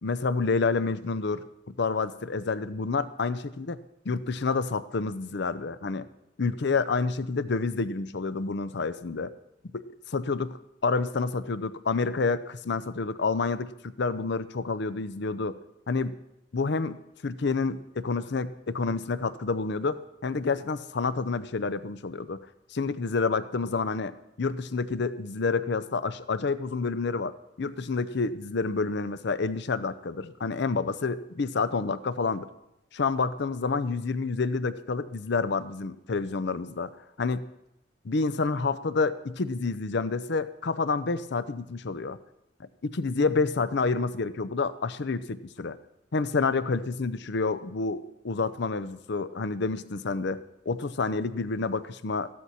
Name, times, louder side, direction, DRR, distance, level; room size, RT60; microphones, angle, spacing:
voice 1, 0.0-3.8 4.1-6.1 6.4-9.3 9.7-15.6 15.9-16.2 16.5-17.0 17.2-22.4 22.7-24.1 24.4-32.5 32.9-36.9 37.2-37.5 38.0-42.2 42.8-45.8 46.1-52.3, left 4 dB, 60° left, 14 dB, 0.6 m, -29 dB
14.5 x 13.0 x 4.3 m, 0.85 s
head